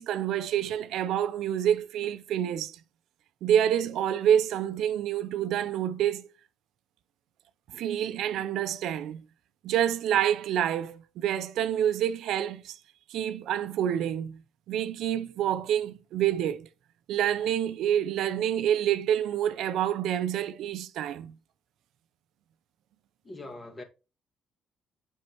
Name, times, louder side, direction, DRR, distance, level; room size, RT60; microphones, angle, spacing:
voice 1, 0.0-2.8 3.4-6.3 7.7-9.2 9.6-12.8 13.1-14.4 14.7-16.7 17.1-21.3, right 10 dB, 85° right, 0.5 m, -27 dB
voice 2, 23.2-23.8, left 2 dB, 30° left, 1.9 m, -42 dB
7.5 x 5.3 x 3.0 m
cardioid pair, 90°, 0 cm